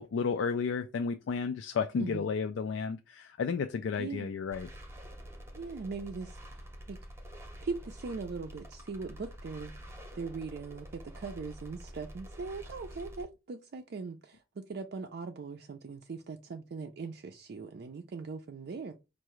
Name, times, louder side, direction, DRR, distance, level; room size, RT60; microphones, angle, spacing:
voice 1, 0.0-4.7, left 5 dB, 85° left, 0.3 m, -32 dB
voice 2, 4.0-4.3 5.5-7.0 7.6-9.7 10.1-18.9, right 4 dB, 55° right, 0.4 m, -40 dB
sound 1, 4.5-13.2, equal, 15° right, 0.7 m, -47 dB
4.6 x 2.5 x 3.0 m
head